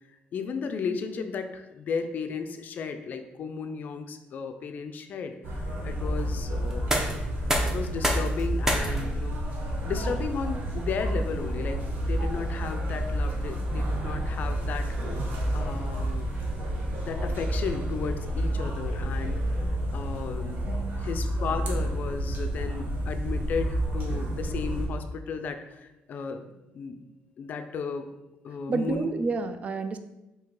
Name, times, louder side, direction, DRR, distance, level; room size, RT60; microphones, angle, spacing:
voice 1, 0.3-5.4 5.8-7.0 7.4-9.4 9.8-14.9 15.5-16.3 17.0-19.5 19.9-20.6 21.0-26.5 26.7-27.0 27.4-28.1 28.4-29.1, left 5 dB, 50° left, 7 dB, 0.4 m, -34 dB
sound 1, 5.4-24.9, right 1 dB, 60° right, 0.9 m, -30 dB
sound 2, 6.7-18.4, right 1 dB, 15° right, 0.7 m, -36 dB
voice 2, 20.7-21.0 28.7-30.0, right 4 dB, 40° right, 9 dB, 0.3 m, -30 dB
4.5 x 2.8 x 3.7 m, 0.96 s
cardioid pair, 120°, 4 cm